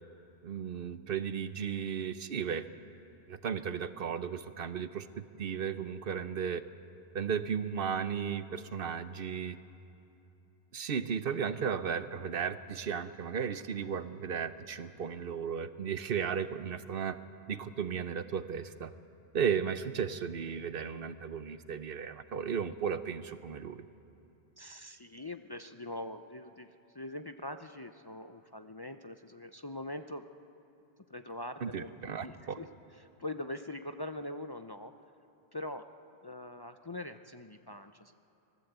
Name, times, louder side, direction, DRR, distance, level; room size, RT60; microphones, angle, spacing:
voice 1, 0.4-2.7 3.3-6.6 7.1-9.6 10.7-17.2 17.5-18.9 19.3-23.9 31.6-32.6, right 7 dB, 65° right, 12 dB, 1.0 m, -35 dB
voice 2, 24.6-30.2 31.1-32.7 32.9-34.9 35.5-35.9 36.2-38.1, left 1 dB, 30° left, 7 dB, 0.6 m, -43 dB
25.0 x 19.5 x 8.1 m, 2.9 s
omnidirectional pair, 1.0 m